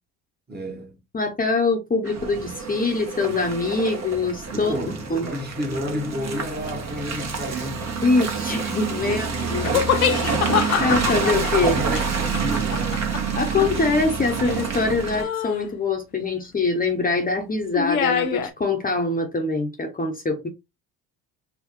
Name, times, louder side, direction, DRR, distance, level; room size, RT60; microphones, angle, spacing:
voice 1, 0.5-1.0 4.5-7.9 9.0-9.7 11.6-13.1, equal, 25° right, 1.6 m, -31 dB
voice 2, 1.1-4.8 5.1-5.3 8.0-9.9 10.8-11.8 13.3-20.5, left 3 dB, 20° left, 1.0 m, -24 dB
Car passing by / Engine, 2.1-15.2, right 5 dB, 40° right, 1.5 m, -27 dB
sound 1, 9.6-14.8 15.2-15.7 17.7-18.5, left 8 dB, 90° left, 0.6 m, -25 dB
4.7 x 2.5 x 3.1 m
hypercardioid pair, 55°, 41 cm